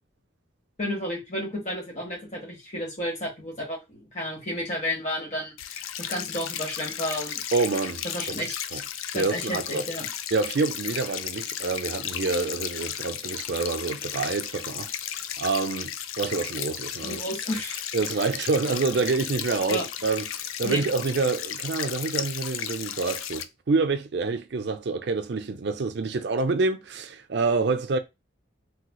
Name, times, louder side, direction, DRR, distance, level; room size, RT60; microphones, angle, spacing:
voice 1, 0.8-7.5 8.1-8.8 9.1-10.1 17.1-17.8 19.7-19.8 20.6-20.8, left 1 dB, 35° left, 1.5 m, -32 dB
sound 1, 5.6-23.4, left 10 dB, 85° left, 0.4 m, -34 dB
voice 2, 7.5-8.3 8.7-8.8 9.1-9.9 10.3-14.9 15.4-17.2 17.9-28.0, right 4 dB, 55° right, 0.5 m, -27 dB
3.3 x 3.1 x 2.2 m
head